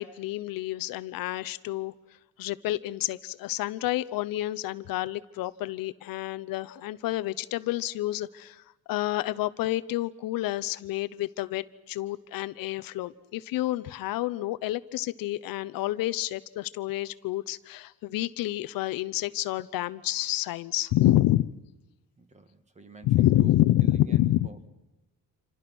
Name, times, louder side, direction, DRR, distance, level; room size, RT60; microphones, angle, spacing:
voice 1, 0.0-1.9 2.4-21.5 23.0-24.5, left 15 dB, 75° left, 15 dB, 0.9 m, -28 dB
voice 2, 22.2-23.5 23.8-24.7, right 4 dB, 20° right, 9 dB, 2.1 m, -49 dB
27.5 x 26.5 x 6.2 m, 1.0 s
cardioid pair, 140°, 34 cm